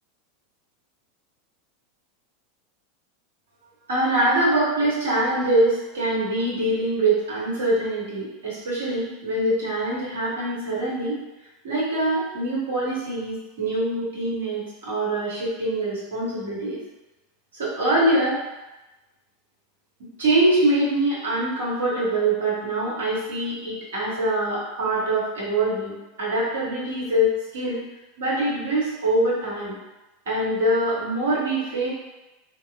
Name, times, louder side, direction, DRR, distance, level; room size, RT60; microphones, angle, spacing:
voice 1, 3.9-11.2 11.6-16.8 17.6-18.4 20.2-27.8 28.2-29.7 30.3-31.9, right 1 dB, 65° right, -7 dB, 1.0 m, -24 dB
2.8 x 2.1 x 2.3 m, 1.1 s
figure-of-eight pair, 85°, 0 cm